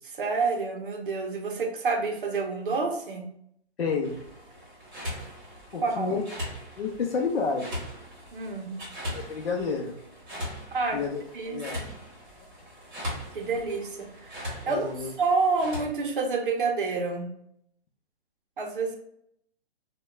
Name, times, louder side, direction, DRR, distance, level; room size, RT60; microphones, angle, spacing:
voice 1, 0.0-3.2 5.8-6.1 8.3-8.7 10.7-11.0 11.3-11.9 13.3-14.9 15.2-17.3 18.6-19.0, right 4 dB, 50° right, 3 dB, 0.6 m, -28 dB
voice 2, 3.8-4.2 5.7-6.2 6.8-7.9 9.1-10.0 10.9-11.8 14.7-15.1, left 5 dB, 60° left, -1 dB, 0.6 m, -30 dB
sound 1, 4.0-15.8, equal, 20° right, 1.1 m, -40 dB
2.8 x 2.2 x 3.3 m, 0.72 s
hypercardioid pair, 165°, 34 cm